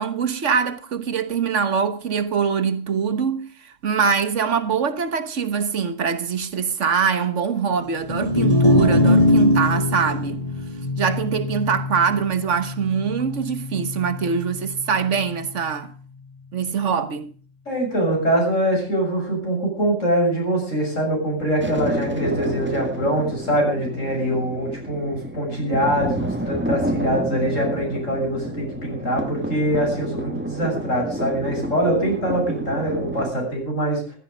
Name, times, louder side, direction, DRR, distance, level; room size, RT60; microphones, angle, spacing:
voice 1, 0.0-10.4 11.0-15.9 16.5-17.3, right 6 dB, 75° right, 1.7 m, -23 dB
sound 1, 8.0-14.3, left 1 dB, 30° left, 3.1 m, -21 dB
voice 2, 17.7-34.2, right 1 dB, 85° left, 7.6 m, -23 dB
sound 2, 21.6-33.3, right 1 dB, 10° right, 2.0 m, -30 dB
15.0 x 14.0 x 5.1 m
omnidirectional pair, 1.3 m